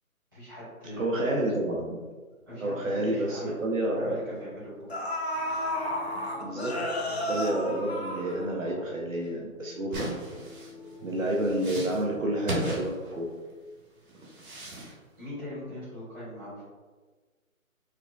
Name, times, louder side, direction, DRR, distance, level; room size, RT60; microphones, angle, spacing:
voice 1, 0.3-1.2 2.5-5.0 15.2-16.6, equal, 15° right, -16 dB, 1.3 m, -40 dB
voice 2, 1.0-2.0 2.6-4.2 6.4-6.8 7.3-10.2 11.0-13.3, right 1 dB, 65° right, -2 dB, 0.6 m, -29 dB
sound 1, 4.4-4.5 4.9-8.8 9.2-9.3, left 1 dB, 50° left, 0.5 m, -32 dB
sound 2, 5.3-11.5, left 1 dB, 35° left, 0.9 m, -47 dB
sound 3, 9.9-13.5 14.1-14.9, right 1 dB, 80° right, 1.3 m, -36 dB
4.6 x 2.2 x 2.3 m, 1.4 s
hypercardioid pair, 175°, 42 cm